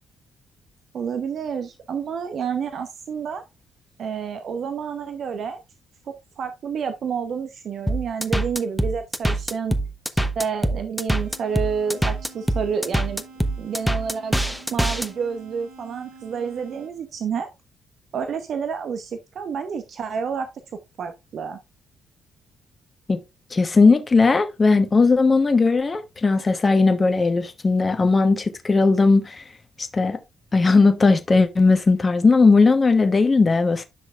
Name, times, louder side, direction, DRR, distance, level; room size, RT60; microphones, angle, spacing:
voice 1, 0.9-3.4 4.0-5.6 6.1-9.7 10.1-13.2 13.6-14.3 14.7-17.5 18.1-20.5 21.0-21.6, right 6 dB, 60° right, 0.9 m, -29 dB
sound 1, 7.9-15.1, right 1 dB, ahead, 1.0 m, -24 dB
sound 2, 11.2-17.2, right 3 dB, 80° right, 2.6 m, -47 dB
voice 2, 23.5-29.4 29.8-30.2 30.5-33.8, left 3 dB, 35° left, 1.0 m, -18 dB
10.0 x 6.1 x 2.4 m
hypercardioid pair, 45°, 0 cm